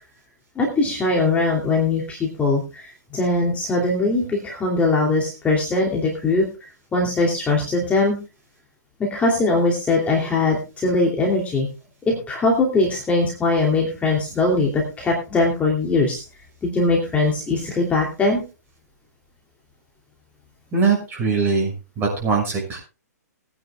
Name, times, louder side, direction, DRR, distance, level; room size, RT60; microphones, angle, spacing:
voice 1, 0.6-6.5 6.9-8.2 9.0-11.7 12.1-16.2 16.6-18.4, left 3 dB, 15° left, -1 dB, 2.7 m, -21 dB
voice 2, 20.7-22.8, right 4 dB, 25° right, 0 dB, 6.2 m, -22 dB
21.5 x 9.8 x 2.3 m, 0.30 s
hypercardioid pair, 125°, 9 cm